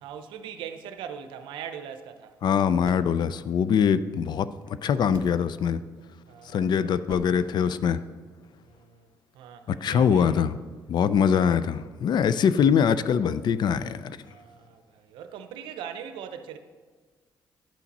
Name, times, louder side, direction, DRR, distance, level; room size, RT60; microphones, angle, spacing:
voice 1, 0.0-2.4 6.3-7.1 8.6-10.4 14.2-16.6, right 8 dB, 90° right, 0.6 m, -41 dB
sound 1, 2.0-2.4 2.8-3.7 4.6-4.7 5.1-5.6 6.4-6.7 7.1-7.3, right 5 dB, 50° right, 0.8 m, -44 dB
voice 2, 2.4-5.8 6.5-8.0 9.8-10.6 10.9-14.2, left 7 dB, 65° left, 0.4 m, -23 dB
10.0 x 5.8 x 4.1 m
cardioid pair, 70°, 8 cm